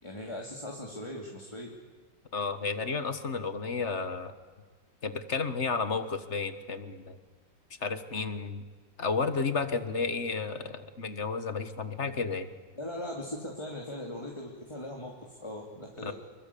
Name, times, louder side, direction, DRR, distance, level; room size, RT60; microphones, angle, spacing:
voice 1, 0.0-1.7 12.7-16.1, left 1 dB, 15° left, -1 dB, 2.6 m, -39 dB
voice 2, 2.3-4.3 5.0-7.2 7.8-8.6 9.0-12.5 16.0-16.1, left 4 dB, 40° left, 11 dB, 1.5 m, -32 dB
27.0 x 23.0 x 8.5 m, 1.5 s
omnidirectional pair, 2.2 m